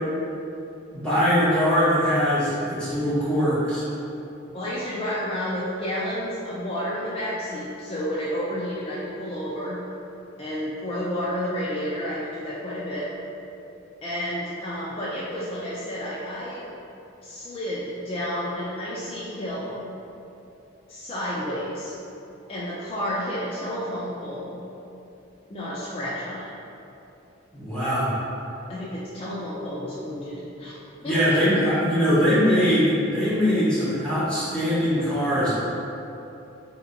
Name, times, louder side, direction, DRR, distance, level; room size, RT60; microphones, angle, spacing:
voice 1, 0.9-3.8 27.5-28.1 31.0-35.5, equal, 5° left, -13 dB, 1.3 m, -22 dB
voice 2, 4.5-9.8 10.4-13.1 14.0-16.6 17.2-19.9 20.9-21.9 22.5-24.6 25.5-26.5 28.7-30.8 31.0-31.4, equal, 30° left, -8 dB, 0.4 m, -31 dB
3.3 x 2.8 x 3.8 m, 2.8 s
head